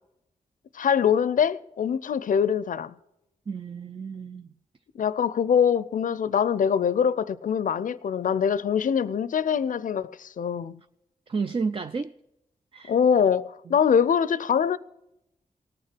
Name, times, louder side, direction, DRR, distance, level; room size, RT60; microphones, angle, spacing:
voice 1, 0.7-2.9 4.9-10.8 12.9-14.8, left 7 dB, 70° left, 0.5 m, -23 dB
voice 2, 3.5-4.5 11.3-12.1 12.7-13.0 13.7-13.8, right 4 dB, 40° right, 0.6 m, -31 dB
18.0 x 6.8 x 7.5 m
cardioid pair, 45°, 14 cm